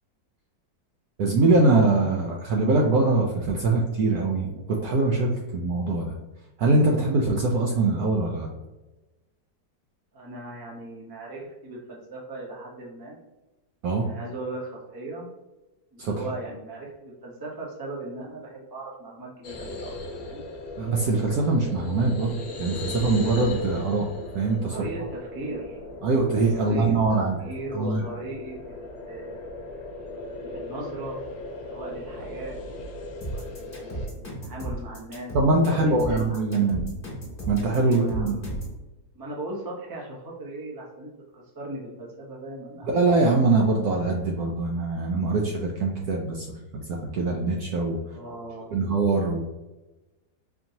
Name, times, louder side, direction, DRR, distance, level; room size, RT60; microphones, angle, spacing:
voice 1, 1.2-6.2 6.6-8.5 13.8-14.1 16.0-16.2 20.8-24.1 24.3-24.8 26.0-27.4 27.7-28.0 35.3-36.8 37.5-38.4 42.8-46.5 46.7-48.0 48.7-49.4, right 3 dB, 70° right, -1 dB, 0.9 m, -23 dB
voice 2, 10.1-13.2 14.0-15.3 15.9-19.9 20.2-20.4 24.7-25.8 26.5-29.5 30.3-31.2 31.7-32.6 33.2-35.3 35.6-36.9 37.8-38.6 39.1-42.9 48.1-48.9, right 2 dB, 25° right, -4 dB, 0.4 m, -38 dB
sound 1, 19.4-34.1, left 2 dB, 60° left, 1.1 m, -38 dB
sound 2, 33.2-38.8, right 1 dB, 30° left, 1.5 m, -34 dB
4.3 x 2.8 x 2.7 m, 1.1 s
omnidirectional pair, 2.0 m